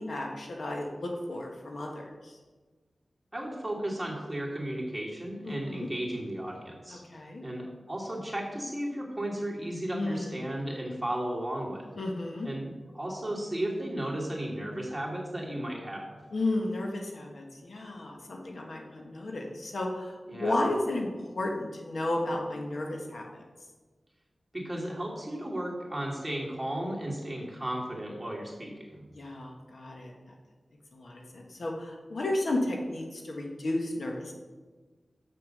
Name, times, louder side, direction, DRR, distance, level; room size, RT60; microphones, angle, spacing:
voice 1, 0.0-2.3 5.4-5.9 6.9-7.4 9.9-10.3 12.0-12.5 16.3-23.4 29.1-30.1 30.9-34.3, left 2 dB, 70° left, 1 dB, 1.5 m, -33 dB
voice 2, 3.3-7.0 7.4-11.9 12.4-16.1 20.3-20.6 24.5-29.0, right 1 dB, 15° right, -4 dB, 2.9 m, -34 dB
6.9 x 6.4 x 6.6 m, 1.3 s
wide cardioid pair, 60°, 0 cm